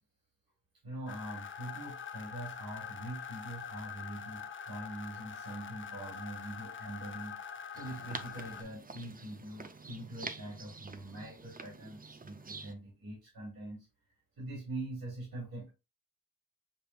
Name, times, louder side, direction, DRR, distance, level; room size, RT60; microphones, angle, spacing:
voice 1, 0.8-7.4 7.7-13.9 14.4-15.7, right 1 dB, 80° right, -5 dB, 2.7 m, -43 dB
sound 1, 1.1-8.6, left 7 dB, 35° left, 0.6 m, -44 dB
sound 2, 7.7-12.7, right 4 dB, 25° right, 0.5 m, -47 dB
7.1 x 2.6 x 2.3 m, 0.25 s
cardioid pair, 55°, 36 cm